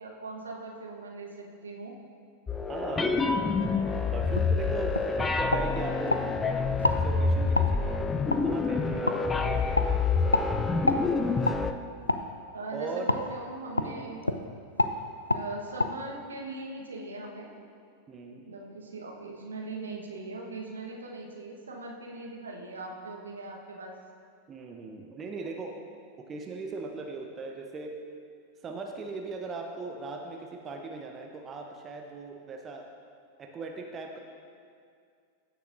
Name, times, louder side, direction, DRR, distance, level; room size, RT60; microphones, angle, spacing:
voice 1, 0.0-2.0 12.5-14.3 15.3-17.5 18.4-23.9, right 2 dB, 70° right, -1 dB, 1.1 m, -40 dB
sound 1, 2.5-11.7, left 4 dB, 15° left, 0.4 m, -27 dB
voice 2, 2.7-3.2 4.1-6.2 6.8-8.0 8.4-10.9 12.7-13.2 13.8-14.2 18.1-18.5 24.5-25.8 26.3-28.0 28.6-32.9 33.4-34.2, right 3 dB, 25° right, 2 dB, 0.8 m, -39 dB
sound 2, 4.3-4.5 4.9-5.1 5.5-6.2 6.8-7.0 7.5-7.7 8.3-8.4 9.1-9.2 9.7-9.9 10.3-10.5 10.9-11.0 11.4-11.6 12.1-12.2 13.1-13.2 13.8-13.9 14.2-14.4 14.8-14.9 15.3-15.4 15.8-15.9, left 2 dB, 85° left, 0.3 m, -26 dB
15.0 x 6.7 x 2.6 m, 2.3 s
figure-of-eight pair, 90°, 0 cm